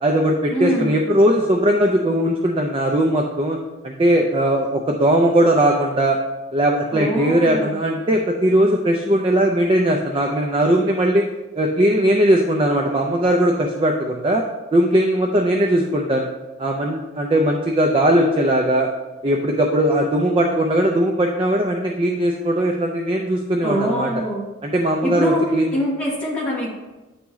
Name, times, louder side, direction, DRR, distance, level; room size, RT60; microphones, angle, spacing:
voice 1, 0.0-3.6 3.8-6.2 6.5-11.3 11.6-14.4 14.7-16.3 16.6-18.9 19.2-24.1 24.6-25.8, right 1 dB, 25° right, 1 dB, 0.4 m, -19 dB
voice 2, 0.5-0.9 6.9-7.7 23.6-24.5 25.0-25.4 25.7-26.7, equal, 5° left, -6 dB, 1.2 m, -23 dB
9.3 x 3.5 x 3.1 m, 1.1 s
head